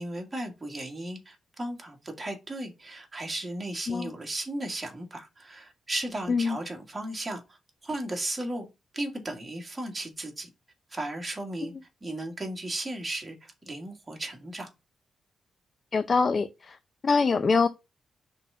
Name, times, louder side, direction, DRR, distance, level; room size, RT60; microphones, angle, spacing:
voice 1, 0.0-8.7 8.9-10.5 10.9-11.7 12.0-14.7, right 1 dB, 15° right, 1.8 m, -35 dB
voice 2, 15.9-16.8 17.0-17.7, left 4 dB, 35° left, 0.4 m, -24 dB
5.7 x 3.8 x 5.5 m
wide cardioid pair, 165°, 0 cm